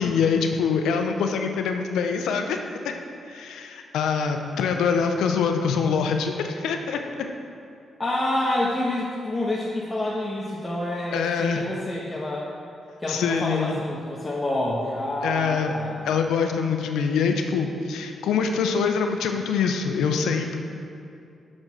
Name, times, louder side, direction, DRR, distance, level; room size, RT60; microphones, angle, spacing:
voice 1, 0.0-2.6 2.8-2.9 3.3-7.0 11.1-11.7 13.1-13.8 15.2-15.7 16.1-20.6, left 6 dB, 85° left, 5 dB, 0.6 m, -24 dB
voice 2, 8.0-12.5 13.0-16.1, left 1 dB, 25° left, -5 dB, 1.2 m, -28 dB
6.5 x 6.2 x 5.9 m, 2.5 s
cardioid pair, 65°, 0 cm